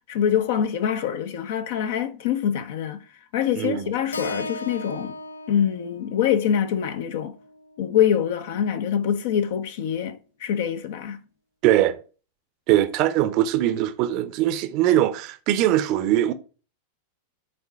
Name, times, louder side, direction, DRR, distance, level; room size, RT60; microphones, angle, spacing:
voice 1, 0.1-3.0 3.3-5.1 5.5-7.4 7.8-11.2, left 9 dB, 55° left, 0.9 m, -24 dB
voice 2, 3.6-3.9 11.6-12.0 12.7-16.3, right 13 dB, 40° right, 0.7 m, -21 dB
Keyboard (musical), 4.1-8.3, left 1 dB, 75° left, 0.4 m, -37 dB
6.8 x 4.1 x 5.7 m
figure-of-eight pair, 90°, 0 cm